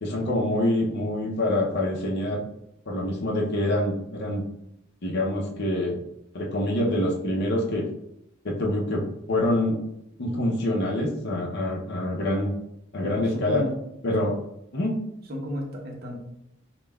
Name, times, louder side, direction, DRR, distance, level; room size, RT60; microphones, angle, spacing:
voice 1, 0.0-2.4 2.9-4.4 5.0-6.0 6.3-7.9 8.4-9.0 9.3-9.8 10.2-12.5 12.9-13.6 14.0-14.4 14.7-15.0, left 1 dB, 55° left, -1 dB, 0.6 m, -25 dB
voice 2, 13.0-13.7 14.2-14.3 15.3-16.2, equal, 50° right, -1 dB, 0.8 m, -33 dB
5.2 x 2.2 x 2.2 m, 0.81 s
head